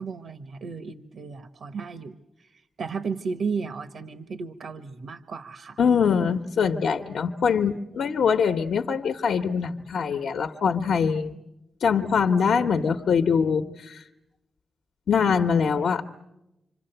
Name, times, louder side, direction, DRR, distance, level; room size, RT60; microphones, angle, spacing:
voice 1, 0.0-2.5 2.8-5.8 7.5-7.6, right 5 dB, 75° right, 11 dB, 1.1 m, -34 dB
voice 2, 5.8-11.3 11.8-14.0 15.1-16.0, left 6 dB, 85° left, 5 dB, 1.0 m, -23 dB
28.0 x 26.0 x 7.9 m, 0.93 s
cardioid pair, 100°, 0 cm